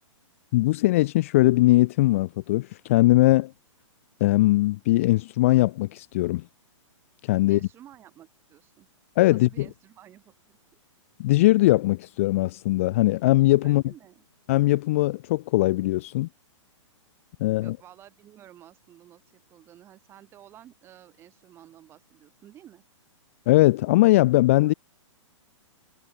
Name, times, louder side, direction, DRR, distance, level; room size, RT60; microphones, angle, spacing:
voice 1, 0.5-3.5 4.2-6.5 7.2-7.6 9.2-9.7 11.2-13.8 14.5-16.3 17.4-17.8 23.5-24.7, left 18 dB, 25° left, 0.6 m, -20 dB
voice 2, 7.5-8.9 9.3-10.6 13.6-14.2 17.6-22.8 24.6-24.7, right 12 dB, 15° right, 4.6 m, -52 dB
hypercardioid pair, 170°, 16 cm